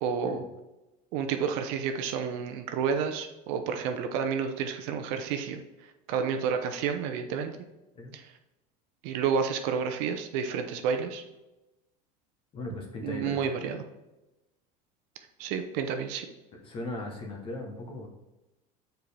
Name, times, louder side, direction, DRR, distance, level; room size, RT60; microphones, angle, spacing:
voice 1, 0.0-0.4 1.1-5.6 6.1-7.6 8.1-8.3 9.0-11.2 13.0-13.8 15.4-16.3, right 6 dB, 60° right, 6 dB, 0.7 m, -30 dB
voice 2, 12.5-13.7 16.6-18.1, left 2 dB, 25° left, 2 dB, 1.0 m, -38 dB
7.3 x 4.5 x 3.4 m, 1.0 s
cardioid pair, 170°, 20 cm